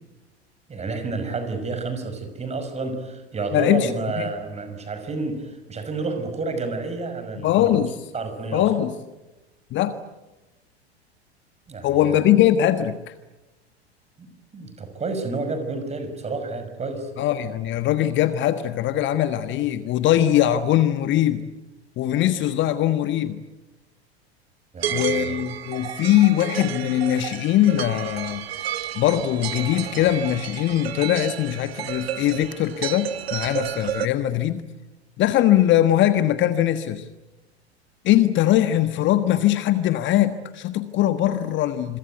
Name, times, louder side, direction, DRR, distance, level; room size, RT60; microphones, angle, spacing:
voice 1, 0.7-7.8 8.1-8.6 11.7-12.2 14.2-17.1 24.7-25.4, right 3 dB, 20° right, 8 dB, 5.9 m, -30 dB
voice 2, 3.5-4.3 7.4-8.0 8.5-8.9 9.7-10.0 11.8-13.1 17.2-21.4 22.0-23.4 24.9-28.4 28.9-34.6 35.2-37.1 38.0-42.0, left 12 dB, 35° left, 11 dB, 1.4 m, -21 dB
sound 1, 24.8-34.1, right 11 dB, 65° right, 1.5 m, -31 dB
27.0 x 23.5 x 9.3 m, 1.1 s
figure-of-eight pair, 85°, 33 cm